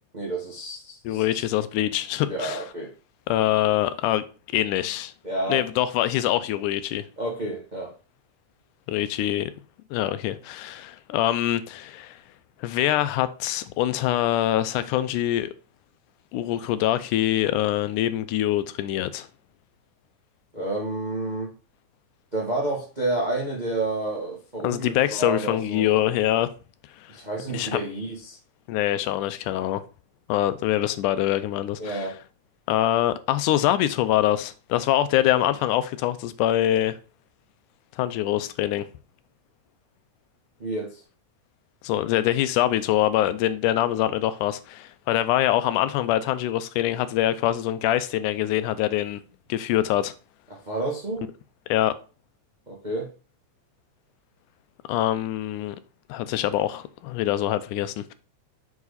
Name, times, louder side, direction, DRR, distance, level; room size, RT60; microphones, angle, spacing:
voice 1, 0.1-1.4 2.3-2.9 5.2-5.6 7.2-7.9 20.5-21.5 22.3-25.9 27.1-28.4 31.8-32.2 40.6-41.0 50.5-51.3 52.7-53.1, right 2 dB, 60° right, 0.4 m, -30 dB
voice 2, 1.0-2.6 3.3-4.3 4.5-5.1 5.5-7.1 8.9-9.5 9.9-12.2 12.6-15.5 16.3-19.3 24.6-26.5 27.0-27.2 27.5-27.8 28.7-29.8 30.3-32.1 32.7-37.0 38.0-38.9 41.8-49.2 49.5-50.1 51.7-51.9 54.9-55.8 56.1-58.1, left 13 dB, 90° left, 2.1 m, -24 dB
6.0 x 4.9 x 4.0 m
omnidirectional pair, 3.5 m